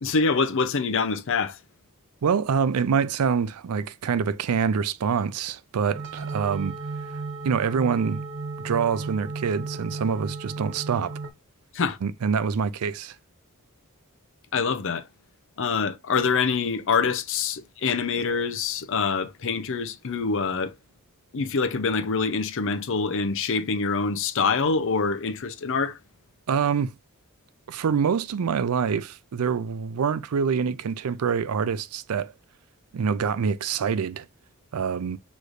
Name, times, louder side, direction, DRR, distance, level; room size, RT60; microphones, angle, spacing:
voice 1, 0.0-1.6 11.7-12.0 14.5-15.0 15.6-20.7 21.3-26.0, left 5 dB, 60° left, 0.6 m, -25 dB
voice 2, 2.2-6.7 7.4-8.2 8.6-11.2 12.0-13.2 26.5-26.9 27.7-32.3 32.9-34.3 34.7-35.2, right 6 dB, 75° right, 0.4 m, -25 dB
sound 1, 5.9-11.3, right 3 dB, 55° right, 1.1 m, -34 dB
6.4 x 3.1 x 2.5 m
head